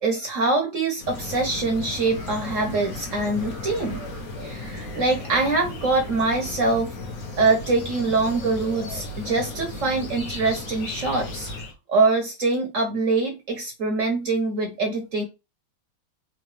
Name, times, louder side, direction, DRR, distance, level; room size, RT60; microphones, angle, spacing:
voice 1, 0.0-4.0 4.4-7.0 7.4-11.5 11.9-15.2, right 3 dB, 60° right, 2 dB, 0.8 m, -24 dB
sound 1, 1.0-11.7, left 2 dB, 55° left, 1.0 m, -35 dB
3.9 x 2.7 x 3.1 m, 0.27 s
omnidirectional pair, 2.2 m